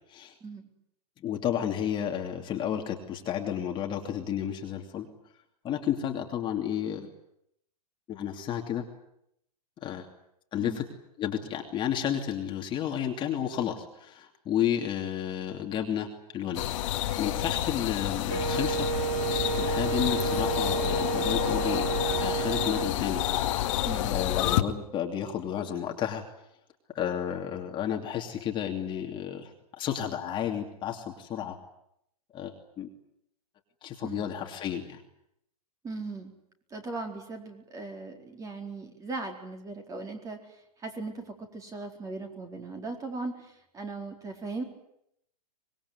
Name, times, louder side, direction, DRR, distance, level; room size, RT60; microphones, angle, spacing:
voice 1, 0.4-0.7 10.6-10.8 11.4-11.5 23.9-24.2 34.0-34.2 35.8-36.3 36.7-40.4 40.8-44.6, right 3 dB, 15° right, 4 dB, 4.4 m, -38 dB
voice 2, 1.2-5.1 5.6-7.1 8.1-8.8 9.8-10.1 10.5-10.8 11.2-19.3 19.5-21.9 22.2-23.2 24.1-26.2 26.9-29.5 29.8-31.6 32.3-32.9 33.8-35.0, left 9 dB, 25° left, 2 dB, 2.8 m, -32 dB
sound 1, 16.5-24.6, left 13 dB, 50° left, 2.2 m, -29 dB
Wind instrument woodwind instrument, 18.3-22.9, right 8 dB, 50° right, 3.3 m, -31 dB
25.0 x 21.0 x 9.8 m, 0.76 s
hypercardioid pair, 135°, 20 cm